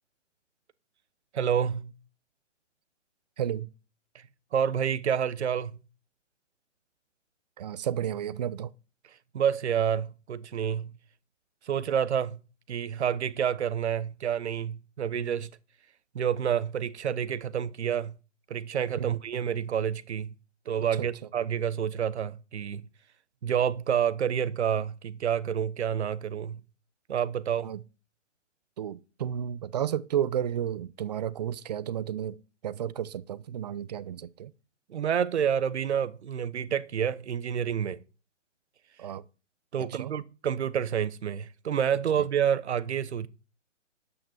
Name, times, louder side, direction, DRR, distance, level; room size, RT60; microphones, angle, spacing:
voice 1, 1.3-1.9 4.5-5.8 9.3-10.9 11.7-12.4 12.7-15.5 16.1-18.1 18.5-20.3 20.7-22.8 23.4-26.6 27.1-27.7 34.9-38.0 39.7-43.3, right 8 dB, 60° right, 1.1 m, -28 dB
voice 2, 3.4-3.7 7.6-8.7 19.0-19.2 21.0-21.1 27.6-27.8 28.8-34.5 39.0-39.2 39.8-40.2 42.1-42.3, right 10 dB, 35° right, 0.6 m, -32 dB
10.5 x 8.6 x 4.5 m
hypercardioid pair, 145°, 38 cm